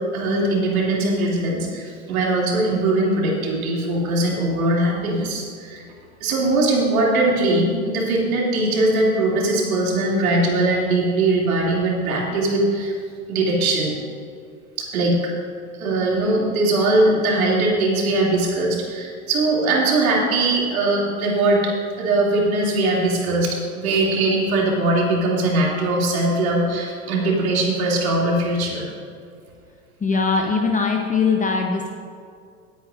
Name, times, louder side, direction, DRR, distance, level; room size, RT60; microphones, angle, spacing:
voice 1, 0.1-5.8 6.2-13.0 13.3-13.9 14.8-15.1 15.8-28.9, right 2 dB, 75° right, -3 dB, 3.0 m, -21 dB
voice 2, 30.0-31.9, left 4 dB, 20° left, 2 dB, 1.0 m, -21 dB
19.0 x 9.1 x 2.6 m, 2.3 s
hypercardioid pair, 80°, 43 cm